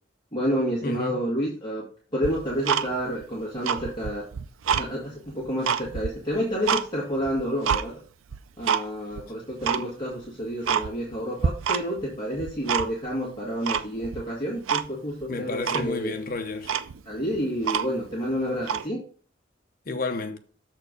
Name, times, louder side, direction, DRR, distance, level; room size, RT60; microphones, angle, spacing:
voice 1, 0.3-1.9 2.1-4.2 4.7-8.0 8.6-16.1 17.1-19.0, equal, 25° left, 1.8 m, -29 dB
voice 2, 0.8-1.2 9.7-9.8 15.3-16.7 19.9-20.4, left 3 dB, 45° left, 0.8 m, -31 dB
Tick-tock, 2.2-3.2 3.6-4.9 5.3-6.9 7.2-7.8 8.3-8.8 9.1-9.2 9.6-9.8 10.2-10.3 10.6-11.2 11.4-12.1 12.3-13.1 13.7-14.2 14.7-14.9 15.2-15.3 15.6-15.9 16.4-16.5 16.6-18.1 18.6-18.9, right 7 dB, 90° right, 0.5 m, -27 dB
7.0 x 4.4 x 5.2 m
head